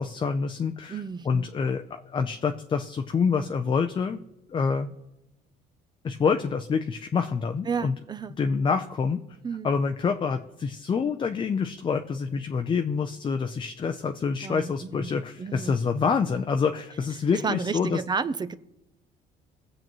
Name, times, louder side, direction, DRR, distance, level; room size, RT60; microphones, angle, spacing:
voice 1, 0.0-4.2 4.5-4.9 6.0-7.9 8.4-9.2 9.6-18.0, left 5 dB, 30° left, 6 dB, 0.5 m, -27 dB
voice 2, 0.9-1.5 7.7-8.3 9.4-9.7 14.4-15.8 17.3-18.6, right 5 dB, 25° right, 14 dB, 0.6 m, -32 dB
21.5 x 7.6 x 3.1 m, 0.91 s
cardioid pair, 110°, 17 cm